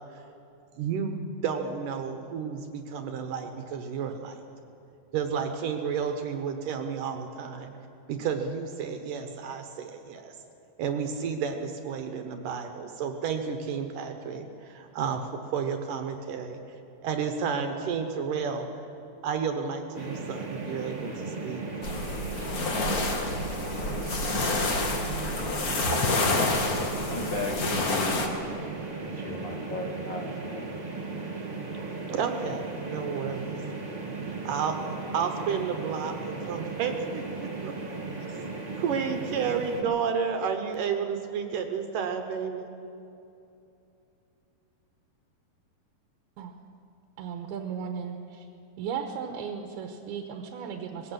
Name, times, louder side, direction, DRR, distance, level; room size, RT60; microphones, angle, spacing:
voice 1, 0.8-4.3 5.1-7.7 8.1-10.3 10.8-15.2 15.5-16.6 17.0-18.7 19.2-21.6 31.7-33.6 34.4-34.7 35.1-37.7 38.3-38.5 38.8-42.7, right 6 dB, 65° right, 6 dB, 2.5 m, -31 dB
sound 1, 19.9-39.8, right 3 dB, 35° right, 0.6 m, -36 dB
sound 2, 21.8-28.3, left 2 dB, 45° left, 1.1 m, -28 dB
voice 2, 25.6-26.7 27.0-28.6 29.0-31.1, left 3 dB, 80° left, 2 dB, 1.0 m, -37 dB
voice 3, 47.2-48.5 48.8-51.1, right 7 dB, 85° right, 5 dB, 3.1 m, -36 dB
20.5 x 16.5 x 7.8 m, 2.7 s
omnidirectional pair, 4.4 m